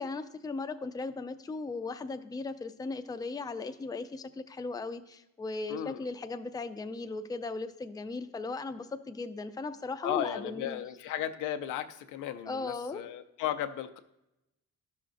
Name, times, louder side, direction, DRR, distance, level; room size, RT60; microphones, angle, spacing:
voice 1, 0.0-10.8 12.5-13.0, left 3 dB, 15° left, 8 dB, 0.4 m, -37 dB
voice 2, 5.7-6.0 10.0-14.0, left 11 dB, 85° left, 9 dB, 0.5 m, -35 dB
12.5 x 5.9 x 2.5 m, 0.90 s
cardioid pair, 90°, 30 cm